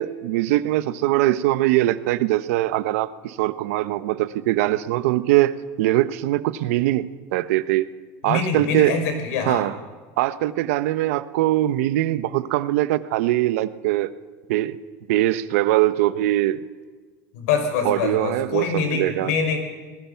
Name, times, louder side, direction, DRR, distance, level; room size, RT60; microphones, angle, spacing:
voice 1, 0.0-7.9 8.2-9.0 9.5-9.7 10.2-14.1 14.5-14.8 15.1-16.6 17.8-19.3, right 15 dB, 75° right, 14 dB, 1.0 m, -22 dB
voice 2, 8.2-9.6 17.3-19.6, left 5 dB, 80° left, 4 dB, 5.9 m, -24 dB
27.0 x 20.5 x 5.8 m, 1.4 s
supercardioid pair, 155°, 8 cm